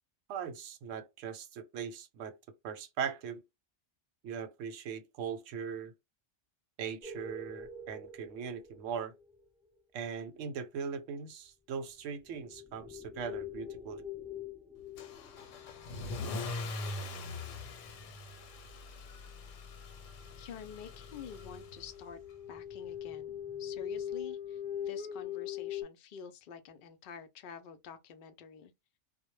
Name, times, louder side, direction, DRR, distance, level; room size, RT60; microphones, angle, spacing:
voice 1, 0.3-2.4 2.6-3.4 4.2-5.9 6.8-9.1 9.9-14.0, right 7 dB, 90° right, 0.9 m, -40 dB
sound 1, 7.0-9.4 12.3-17.9 18.7-18.8 19.1-19.3 19.9-20.0 20.2-20.4 20.6-25.8, left 8 dB, ahead, 0.9 m, -43 dB
Car / Engine starting / Accelerating revving vroom, 15.0-22.1, left 2 dB, 85° left, 1.0 m, -42 dB
voice 2, 20.4-22.2 22.5-28.7, left 6 dB, 60° left, 0.5 m, -48 dB
2.1 x 2.0 x 3.0 m
omnidirectional pair, 1.3 m